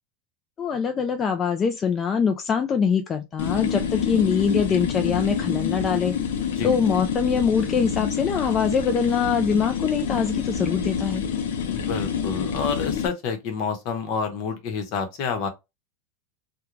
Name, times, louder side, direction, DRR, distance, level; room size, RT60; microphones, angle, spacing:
voice 1, 0.6-6.1 6.6-11.2, left 6 dB, 25° left, 0.3 m, -23 dB
sound 1, 3.4-13.1, left 7 dB, 85° left, 0.6 m, -27 dB
voice 2, 11.7-15.5, left 5 dB, 50° left, 0.9 m, -28 dB
2.4 x 2.2 x 3.0 m
supercardioid pair, 135°, 0 cm